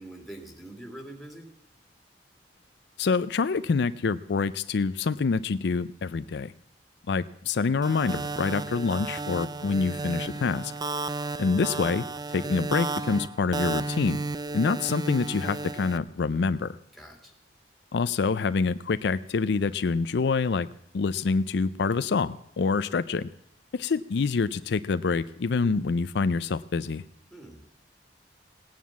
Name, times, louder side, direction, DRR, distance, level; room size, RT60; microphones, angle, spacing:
voice 1, 0.0-1.5 16.9-17.3 27.3-27.6, right 1 dB, ahead, 2 dB, 2.6 m, -44 dB
voice 2, 3.0-6.5 7.1-10.7 11.4-12.0 12.3-14.2 14.5-16.8 17.9-20.7 20.9-23.3 23.7-27.0, left 4 dB, 70° left, 14 dB, 0.5 m, -26 dB
sound 1, 7.8-16.0, right 3 dB, 25° right, 0.5 m, -33 dB
17.0 x 9.4 x 7.3 m, 0.74 s
head